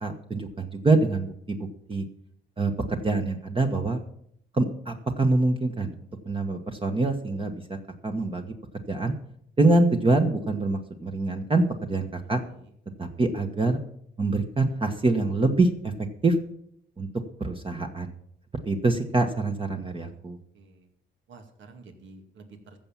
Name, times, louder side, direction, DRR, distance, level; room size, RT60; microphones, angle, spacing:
voice 1, 0.0-2.0 2.6-4.0 4.5-5.9 6.2-7.8 8.0-8.5 8.9-9.1 9.6-12.4 13.0-13.8 14.2-15.9 16.2-16.4 17.0-17.1 17.4-18.1 18.6-20.4, right 2 dB, 25° right, 4 dB, 1.3 m, -25 dB
voice 2, 20.5-20.9 21.3-22.8, right 3 dB, 70° right, 5 dB, 2.3 m, -50 dB
14.5 x 7.2 x 7.3 m, 0.70 s
cardioid pair, 90°, 20 cm